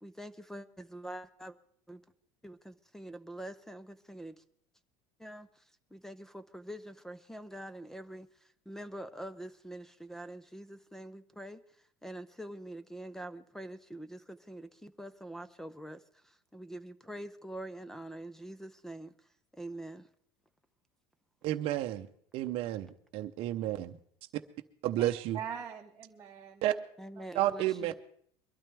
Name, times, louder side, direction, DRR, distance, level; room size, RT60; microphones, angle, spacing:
voice 1, 0.0-1.6 1.9-2.0 2.4-4.4 5.2-5.6 5.9-8.3 8.7-11.6 12.0-19.1 19.5-20.1 27.0-28.0, right 1 dB, 5° left, 14 dB, 0.5 m, -45 dB
voice 2, 21.4-22.1 22.3-24.0 24.3-24.4 24.8-25.4 26.6-26.7 27.3-28.0, right 13 dB, 50° right, 6 dB, 0.7 m, -31 dB
voice 3, 25.0-26.8 27.2-27.6, right 8 dB, 25° right, -2 dB, 1.0 m, -43 dB
22.5 x 12.5 x 3.4 m, 0.62 s
cardioid pair, 145°, 12 cm